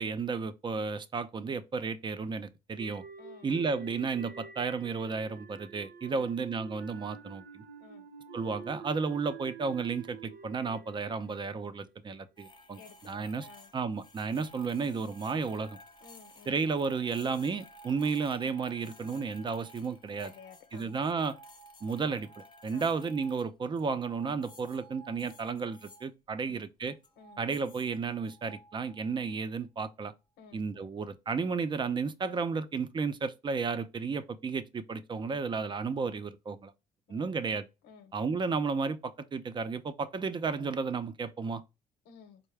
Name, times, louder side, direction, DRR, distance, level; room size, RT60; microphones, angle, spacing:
voice 1, 0.0-3.0 3.4-7.6 8.3-13.5 13.7-15.8 16.5-20.3 20.7-21.4 21.8-22.3 22.6-27.0 27.4-30.1 30.5-36.7 37.1-37.6 38.1-41.6, right 5 dB, 25° right, 0.5 m, -33 dB
sound 1, 2.8-12.0, right 5 dB, 60° right, 0.7 m, -49 dB
voice 2, 3.2-3.5 6.1-6.4 7.8-8.1 12.8-13.7 16.0-16.6 20.2-20.9 22.7-22.9 26.3-26.6 27.2-27.4 30.4-30.9 37.1-37.3 37.8-38.1 42.0-42.4, left 7 dB, 90° left, 0.9 m, -54 dB
sound 2, 12.4-26.1 26.9-29.5, equal, 25° left, 0.7 m, -55 dB
4.6 x 2.1 x 3.3 m
cardioid pair, 110°, 17 cm